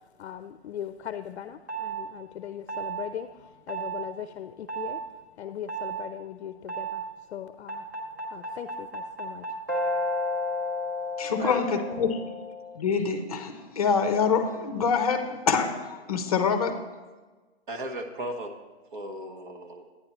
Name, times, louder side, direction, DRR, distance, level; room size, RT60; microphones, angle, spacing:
voice 1, 0.2-5.0 5.4-7.1 7.3-7.8 8.3-9.4, left 10 dB, 75° left, 10 dB, 0.5 m, -39 dB
sound 1, 1.7-2.0 2.7-3.1 3.7-4.1 4.7-5.0 5.7-6.0 6.7-7.1 7.7-12.8, equal, 20° right, 0.4 m, -32 dB
voice 2, 11.2-12.2 12.8-16.8, left 5 dB, 35° left, 7 dB, 0.7 m, -25 dB
voice 3, 17.7-18.5 18.9-19.9, right 1 dB, 50° right, 3 dB, 1.1 m, -36 dB
10.5 x 9.4 x 3.0 m, 1.3 s
hypercardioid pair, 175°, 33 cm